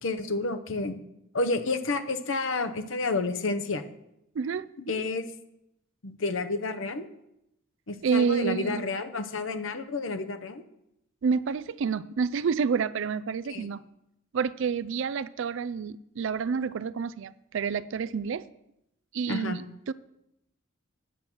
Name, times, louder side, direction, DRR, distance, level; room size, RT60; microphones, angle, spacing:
voice 1, 0.0-1.0 1.3-3.8 4.9-5.2 6.0-7.1 7.9-10.6 13.5-13.7 19.3-19.6, left 3 dB, 65° left, 0.9 m, -30 dB
voice 2, 4.3-4.7 8.0-8.8 11.2-13.8 14.3-18.5 19.1-19.9, right 6 dB, 65° right, 0.4 m, -29 dB
9.4 x 6.1 x 7.2 m
head